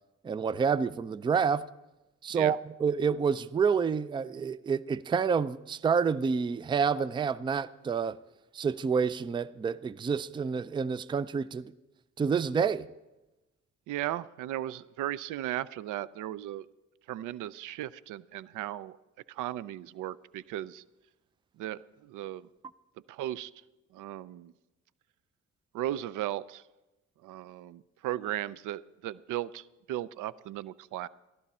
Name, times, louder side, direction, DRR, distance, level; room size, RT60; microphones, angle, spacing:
voice 1, 0.2-1.7 2.2-8.2 8.5-11.7 12.2-12.9, right 6 dB, 15° right, 0.3 m, -28 dB
voice 2, 13.9-16.7 17.1-19.0 19.3-20.8 21.6-22.5 23.1-23.5 23.9-24.5 25.7-26.7 27.2-31.1, right 13 dB, 85° right, 0.5 m, -36 dB
14.5 x 12.0 x 4.2 m
cardioid pair, 90°, 30 cm